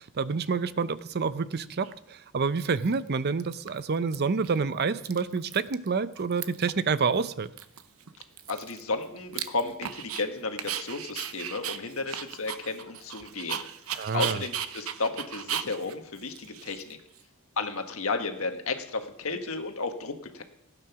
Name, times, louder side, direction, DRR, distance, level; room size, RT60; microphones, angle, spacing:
voice 1, 0.0-7.5 14.0-14.4, right 5 dB, 50° right, 14 dB, 0.6 m, -28 dB
Dog, 1.8-1.9 2.6-3.1 3.4-4.2 4.4-4.6 4.8-5.9 6.1-6.8 7.1-7.2 7.6-10.2 10.6-17.2, right 10 dB, 75° right, 0.8 m, -37 dB
voice 2, 8.5-13.6 14.1-17.0 17.6-20.4, left 3 dB, 70° left, 5 dB, 1.5 m, -33 dB
16.0 x 9.1 x 5.9 m, 0.77 s
head